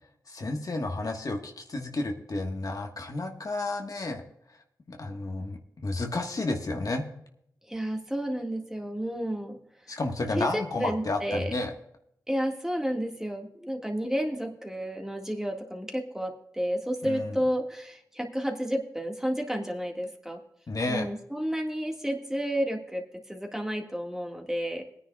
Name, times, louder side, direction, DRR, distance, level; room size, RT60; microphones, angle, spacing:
voice 1, 0.3-4.2 4.9-7.1 9.9-11.7 17.0-17.3 20.7-21.1, left 2 dB, 55° left, 3 dB, 1.4 m, -31 dB
voice 2, 7.7-9.6 10.4-11.5 12.3-20.4 20.9-24.8, equal, 5° right, 2 dB, 1.8 m, -31 dB
21.0 x 10.0 x 2.3 m, 0.73 s
cardioid pair, 60°, 7 cm